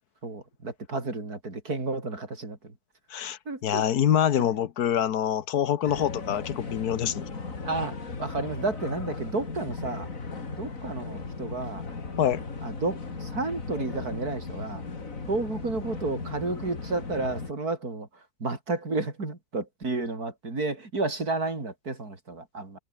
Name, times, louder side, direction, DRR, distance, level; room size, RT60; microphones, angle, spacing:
voice 1, 0.2-2.7 3.5-3.8 7.6-10.1 10.5-11.8 12.6-14.8 15.3-18.1 18.4-22.8, right 3 dB, 80° right, 5.1 m, -31 dB
voice 2, 3.1-7.2 12.2-12.4, left 9 dB, 90° left, 1.6 m, -25 dB
sound 1, 5.8-17.5, left 4 dB, 60° left, 3.2 m, -37 dB
omnidirectional pair, 1.6 m